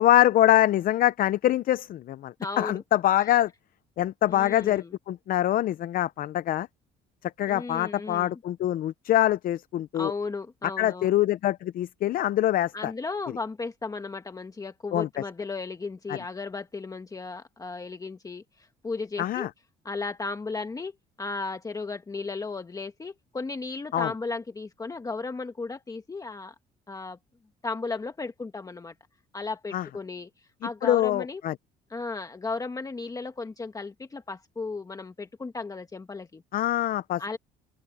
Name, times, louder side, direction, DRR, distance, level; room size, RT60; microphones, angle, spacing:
voice 1, 0.0-3.5 4.0-6.7 7.2-10.1 10.8-12.9 14.9-15.1 16.1-16.2 19.2-19.5 23.9-24.1 29.7-29.9 30.8-31.5 36.5-37.2, left 13 dB, 55° left, 0.6 m, -24 dB
voice 2, 2.4-2.8 4.3-4.9 7.5-8.4 9.9-11.2 12.7-19.5 19.8-26.5 26.9-27.2 27.6-28.9 29.3-31.4 31.9-36.4 37.2-37.4, left 3 dB, 20° left, 1.4 m, -35 dB
open air
cardioid pair, 110°, 17 cm